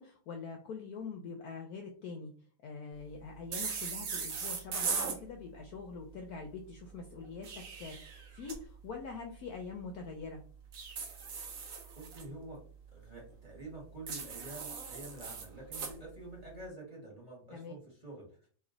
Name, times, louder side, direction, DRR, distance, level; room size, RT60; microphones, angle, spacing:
voice 1, 0.0-2.3 2.6-7.5 7.8-10.4 17.5-17.7, left 4 dB, 70° left, 3 dB, 0.9 m, -44 dB
sound 1, 3.5-5.2 7.2-8.6 10.7-12.2 14.1-15.9, right 5 dB, 55° right, 1.1 m, -38 dB
voice 2, 11.9-12.6 12.9-18.5, right 2 dB, 20° right, -3 dB, 1.4 m, -48 dB
3.1 x 2.9 x 3.8 m, 0.44 s
omnidirectional pair, 2.0 m